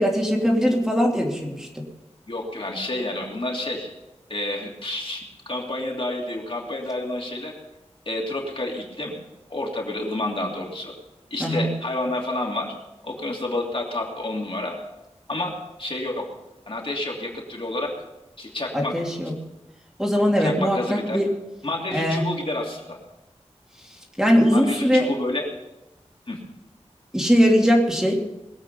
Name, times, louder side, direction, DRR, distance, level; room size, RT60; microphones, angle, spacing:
voice 1, 0.0-1.8 11.4-11.7 18.7-19.3 20.0-21.3 21.9-22.3 24.2-25.1 27.1-28.1, equal, 5° right, -1 dB, 2.8 m, -20 dB
voice 2, 2.3-3.9 4.3-7.5 8.0-9.1 9.5-10.9 11.3-12.7 13.0-14.8 15.3-15.5 15.8-16.2 16.7-17.9 18.4-18.9 20.4-21.2 21.6-23.0 24.5-25.5 26.3-26.4, left 2 dB, 50° left, -1 dB, 2.9 m, -29 dB
22.0 x 8.1 x 5.4 m, 0.97 s
wide cardioid pair, 75°, 12 cm